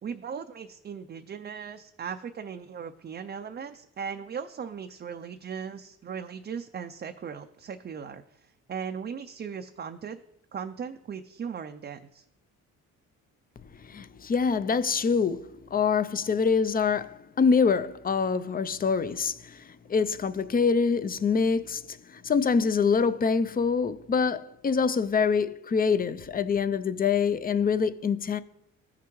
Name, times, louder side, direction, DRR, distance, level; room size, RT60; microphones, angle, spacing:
voice 1, 0.0-10.2 10.5-12.2, right 7 dB, 35° right, 0.5 m, -38 dB
voice 2, 13.8-28.4, left 5 dB, 30° left, 0.5 m, -25 dB
14.5 x 5.8 x 3.1 m
cardioid pair, 90°, 30 cm